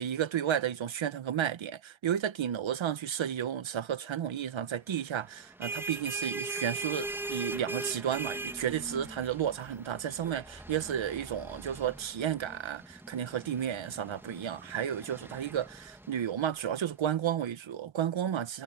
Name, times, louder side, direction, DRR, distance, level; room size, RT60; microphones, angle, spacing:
voice 1, 0.0-18.6, right 9 dB, 75° right, 1.6 m, -32 dB
sound 1, 5.4-16.7, right 2 dB, 5° right, 1.3 m, -41 dB
wide cardioid pair, 105°, 47 cm